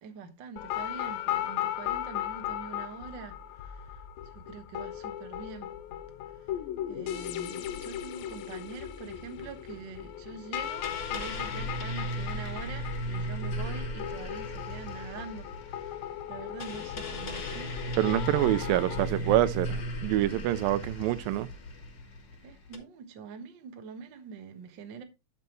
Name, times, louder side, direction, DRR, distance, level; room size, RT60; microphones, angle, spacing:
voice 1, 0.0-5.7 6.4-6.5 6.9-16.0 16.3-17.8 18.8-19.3 22.4-25.0, right 6 dB, 65° right, 1.1 m, -44 dB
sound 1, 0.6-19.0, left 12 dB, 85° left, 2.4 m, -37 dB
sound 2, 10.6-22.8, equal, 50° left, 1.3 m, -36 dB
voice 2, 18.0-21.5, right 14 dB, 85° right, 2.3 m, -26 dB
12.0 x 5.5 x 3.1 m
omnidirectional pair, 4.0 m